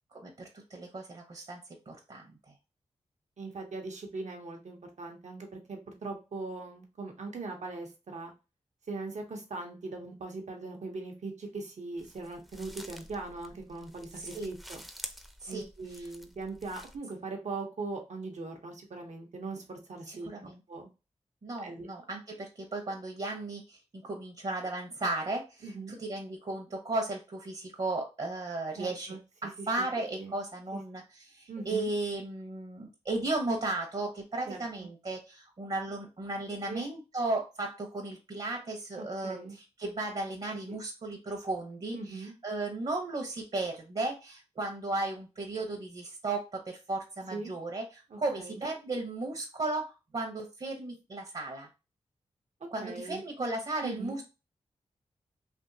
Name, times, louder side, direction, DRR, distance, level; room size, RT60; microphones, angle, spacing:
voice 1, 0.1-1.6 1.9-2.2 14.3-14.5 15.4-15.7 20.1-20.6 21.4-29.1 29.4-31.0 31.3-39.4 39.8-51.7 52.7-54.2, right 2 dB, 50° right, 2 dB, 0.9 m, -35 dB
voice 2, 3.4-8.3 8.9-14.8 15.5-20.9 21.6-21.9 25.6-25.9 28.8-29.8 30.2-30.3 30.7-30.8 31.5-31.9 34.5-34.9 36.7-36.9 39.0-39.6 40.5-40.8 41.9-42.3 47.3-47.5 48.1-48.6 52.8-53.2 53.8-54.2, right 3 dB, 75° right, 2 dB, 1.0 m, -40 dB
sound 1, 12.0-17.0, equal, ahead, 0.6 m, -48 dB
3.5 x 2.8 x 2.7 m, 0.28 s
cardioid pair, 55°, 12 cm